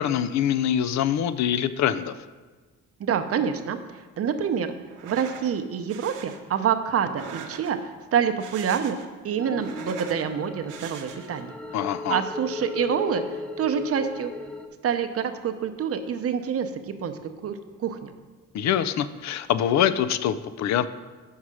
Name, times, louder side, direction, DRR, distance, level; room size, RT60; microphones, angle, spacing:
voice 1, 0.0-2.1 11.7-12.2 18.5-20.9, left 10 dB, 65° left, 14 dB, 0.4 m, -24 dB
voice 2, 3.0-3.8 4.2-4.7 5.0-9.0 9.2-11.5 12.1-13.2 13.6-14.3 14.8-18.1, right 7 dB, 50° right, 9 dB, 0.6 m, -27 dB
sound 1, 4.9-5.5 5.9-6.4 7.0-7.9 8.3-9.2 9.5-10.2 10.7-11.4, right 7 dB, 85° right, 0.7 m, -42 dB
howling terror, 9.4-14.7, left 3 dB, 5° left, 0.6 m, -36 dB
5.6 x 4.8 x 6.2 m, 1.3 s
cardioid pair, 90°, 30 cm